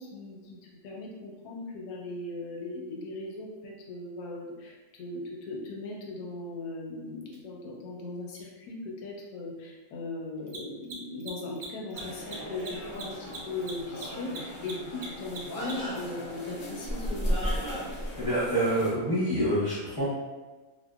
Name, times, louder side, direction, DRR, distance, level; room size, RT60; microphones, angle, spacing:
voice 1, 0.0-17.5, left 2 dB, 80° left, -1 dB, 1.1 m, -38 dB
Mechanisms, 7.3-7.4 10.4-16.0, right 3 dB, 65° right, 0.7 m, -42 dB
sound 1, 11.9-18.9, equal, 60° left, 0.5 m, -35 dB
voice 2, 18.2-20.0, right 1 dB, 20° left, -13 dB, 0.7 m, -27 dB
2.7 x 2.1 x 2.2 m, 1.3 s
omnidirectional pair, 1.6 m